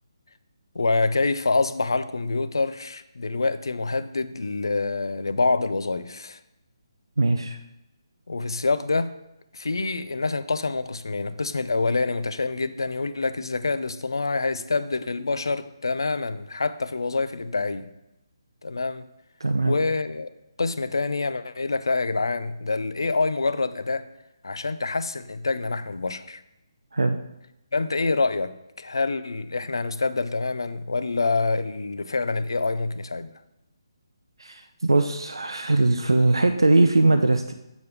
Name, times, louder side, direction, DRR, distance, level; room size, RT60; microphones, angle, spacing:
voice 1, 0.7-6.4 8.3-9.1 9.5-17.9 18.6-19.0 19.6-20.3 20.6-24.1 24.4-26.4 27.7-33.3, left 3 dB, 65° left, 12 dB, 0.5 m, -26 dB
voice 2, 7.2-7.6 19.4-19.7 26.9-27.2 34.4-37.5, right 2 dB, 70° right, 7 dB, 0.5 m, -21 dB
7.0 x 6.6 x 3.4 m, 0.90 s
figure-of-eight pair, 145°, 3 cm